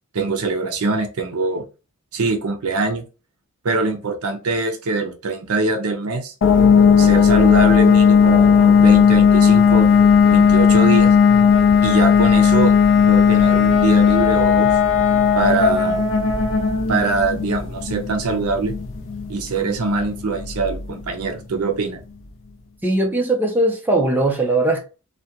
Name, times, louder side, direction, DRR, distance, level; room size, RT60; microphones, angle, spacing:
voice 1, 0.1-1.6 2.1-3.1 3.6-6.3 7.0-9.9 10.3-11.2 11.8-12.7 13.1-14.7 15.3-16.1 16.9-18.8 19.3-22.0, right 3 dB, 80° right, 0.6 m, -23 dB
sound 1, 6.4-21.0, left 6 dB, 60° left, 0.4 m, -15 dB
voice 2, 22.8-24.8, right 2 dB, 10° right, 0.4 m, -19 dB
2.4 x 2.2 x 2.7 m
head